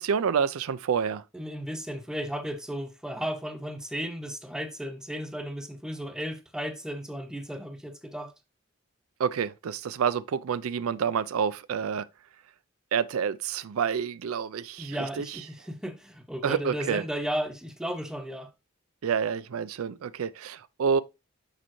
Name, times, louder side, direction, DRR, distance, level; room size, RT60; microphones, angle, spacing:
voice 1, 0.0-1.2 9.2-12.1 12.9-15.4 16.4-17.0 19.0-21.0, right 7 dB, 90° right, 0.4 m, -28 dB
voice 2, 1.3-8.3 14.8-18.5, equal, 5° right, 0.6 m, -34 dB
6.4 x 5.4 x 3.1 m
head